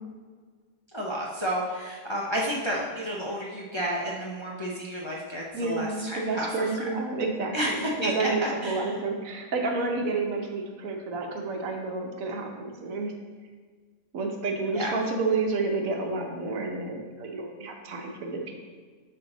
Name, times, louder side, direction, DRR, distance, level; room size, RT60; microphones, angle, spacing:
voice 1, 0.9-6.5 6.8-6.9 7.5-8.9 14.7-14.9, equal, 30° left, -4 dB, 0.6 m, -31 dB
voice 2, 5.5-13.1 14.1-18.7, right 3 dB, 75° right, 2 dB, 1.2 m, -30 dB
5.7 x 5.4 x 3.9 m, 1.5 s
omnidirectional pair, 1.5 m